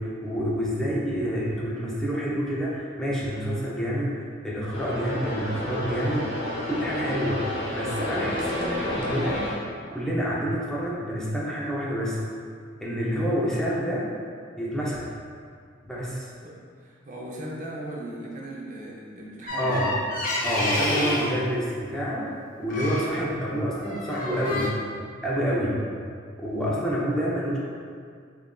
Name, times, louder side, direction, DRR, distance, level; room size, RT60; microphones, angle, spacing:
voice 1, 0.0-6.3 6.7-9.5 9.9-12.2 12.8-14.1 14.6-15.1 15.8-16.3 19.6-20.0 20.4-22.3 22.6-24.8 25.2-25.8 26.4-27.6, equal, 5° left, -7 dB, 0.5 m, -28 dB
sound 1, 4.7-9.6, left 1 dB, 75° left, 0.9 m, -30 dB
voice 2, 16.4-20.0 25.4-25.7, right 1 dB, 45° right, -3 dB, 0.6 m, -38 dB
sound 2, 19.5-21.4 22.7-23.1 23.8-24.7, left 1 dB, 45° left, 0.8 m, -28 dB
6.5 x 2.5 x 2.2 m, 2.1 s
head